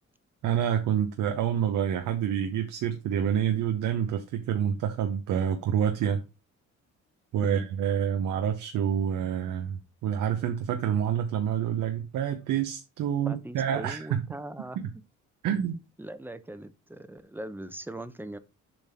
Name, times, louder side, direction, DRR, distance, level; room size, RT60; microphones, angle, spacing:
voice 1, 0.4-6.2 7.3-14.3 14.8-14.9 15.4-15.8, right 9 dB, 80° right, 1.0 m, -27 dB
voice 2, 13.3-14.8 16.0-18.4, right 1 dB, 5° right, 0.8 m, -39 dB
7.5 x 3.3 x 5.7 m
cardioid pair, 90°, 30 cm